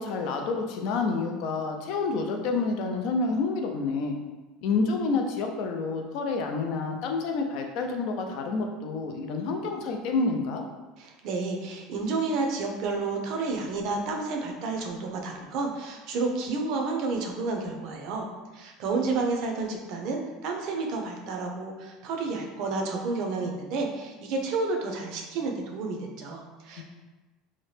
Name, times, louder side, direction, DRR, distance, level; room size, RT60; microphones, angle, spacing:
voice 1, 0.0-4.2 4.6-10.6 26.8-26.9, left 4 dB, 60° left, 3 dB, 0.4 m, -28 dB
voice 2, 11.0-18.2 18.5-26.8, right 3 dB, 60° right, 2 dB, 0.5 m, -30 dB
2.8 x 2.1 x 3.2 m, 1.2 s
supercardioid pair, 135°, 0 cm